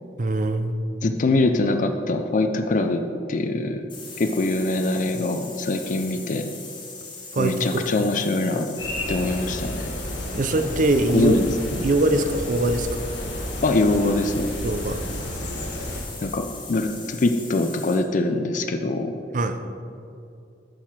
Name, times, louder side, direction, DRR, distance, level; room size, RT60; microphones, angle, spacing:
voice 1, 0.2-0.8 7.3-7.8 10.3-11.4 11.8-13.0 14.6-15.0 19.3-19.6, right 2 dB, 45° right, 8 dB, 0.5 m, -22 dB
voice 2, 1.0-3.0 3.3-3.9 4.2-6.5 7.4-8.7 9.1-9.9 11.1-11.5 13.6-14.5 16.2-19.2, left 2 dB, 45° left, 7 dB, 0.4 m, -23 dB
sound 1, 3.9-18.0, left 4 dB, 25° left, 1.4 m, -40 dB
sound 2, 8.8-16.0, left 1 dB, 85° left, 1.6 m, -32 dB
8.7 x 5.7 x 4.7 m, 2.5 s
head